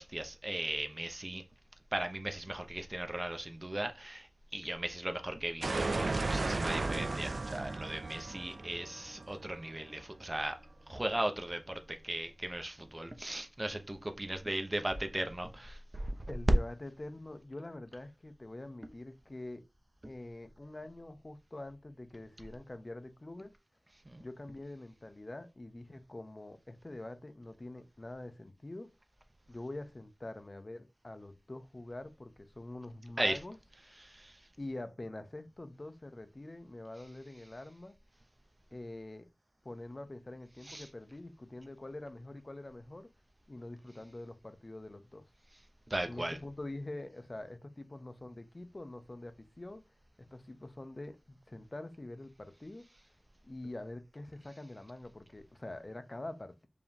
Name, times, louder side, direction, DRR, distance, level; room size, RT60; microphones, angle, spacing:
voice 1, 0.0-1.4 1.9-10.6 10.9-16.1 24.1-24.2 33.2-33.4 34.0-34.3 40.7-40.9 45.9-46.4, right 1 dB, 30° right, 0.8 m, -37 dB
sound 1, 5.6-10.4, right 3 dB, 70° right, 0.3 m, -35 dB
voice 2, 16.3-19.7 20.0-23.5 24.2-28.9 29.5-33.6 34.6-38.0 38.7-39.3 39.6-43.1 43.5-45.3 46.0-49.8 50.2-52.9 53.4-56.7, left 2 dB, 45° left, 0.7 m, -45 dB
4.8 x 3.3 x 2.8 m
cardioid pair, 40°, 0 cm